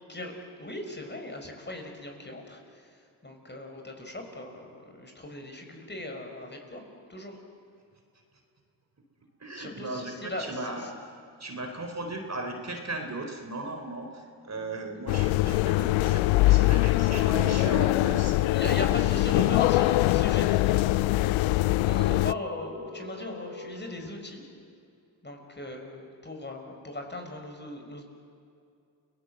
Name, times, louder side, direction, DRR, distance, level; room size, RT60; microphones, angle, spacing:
voice 1, 0.1-6.8 7.1-7.4 9.5-10.9 18.5-21.4 21.8-24.4 25.2-28.0, left 1 dB, 20° left, 3 dB, 5.8 m, -38 dB
voice 2, 9.4-10.9 11.4-18.5 19.3-19.5, right 2 dB, 35° right, 4 dB, 4.1 m, -37 dB
sound 1, 15.1-22.3, left 19 dB, 70° left, 0.5 m, -23 dB
sound 2, 15.4-23.7, left 1 dB, 80° right, 6.0 m, -42 dB
29.0 x 18.5 x 7.9 m, 2.5 s
supercardioid pair, 55°, 49 cm